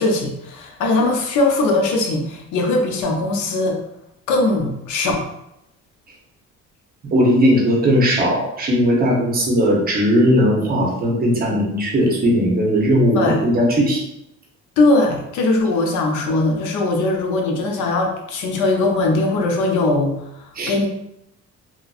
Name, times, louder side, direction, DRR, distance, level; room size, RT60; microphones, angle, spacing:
voice 1, 0.0-3.8 4.3-5.3 13.1-13.4 14.8-20.9, left 2 dB, 90° left, 2 dB, 0.6 m, -20 dB
voice 2, 7.1-14.0 20.6-20.7, equal, 30° right, -1 dB, 0.7 m, -17 dB
3.0 x 2.4 x 2.4 m, 0.82 s
cardioid pair, 135°, 29 cm